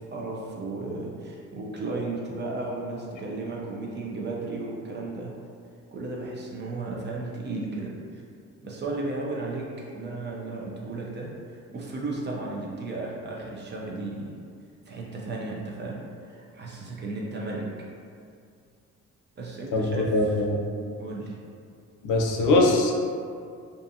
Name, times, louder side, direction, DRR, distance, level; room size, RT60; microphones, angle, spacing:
voice 1, 0.1-5.3 5.9-8.2 8.6-9.7 9.9-14.3 14.9-17.6 19.4-20.4 21.0-21.4, right 2 dB, 35° right, -3 dB, 0.6 m, -34 dB
voice 2, 19.7-20.6 22.0-22.9, left 2 dB, 85° left, 0 dB, 0.5 m, -22 dB
2.5 x 2.4 x 2.6 m, 2.3 s
cardioid pair, 90°, 30 cm